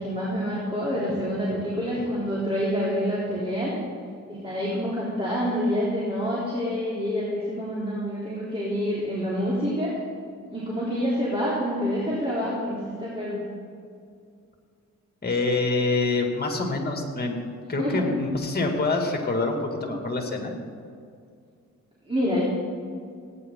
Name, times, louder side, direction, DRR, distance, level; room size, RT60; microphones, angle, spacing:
voice 1, 0.0-3.7 4.3-9.9 10.5-13.4 17.8-18.1 22.0-22.4, equal, 20° right, -8 dB, 3.6 m, -27 dB
voice 2, 15.2-17.4 17.7-20.5, left 3 dB, 30° left, 2 dB, 2.5 m, -26 dB
17.5 x 9.7 x 3.9 m, 2.3 s
cardioid pair, 75°, 31 cm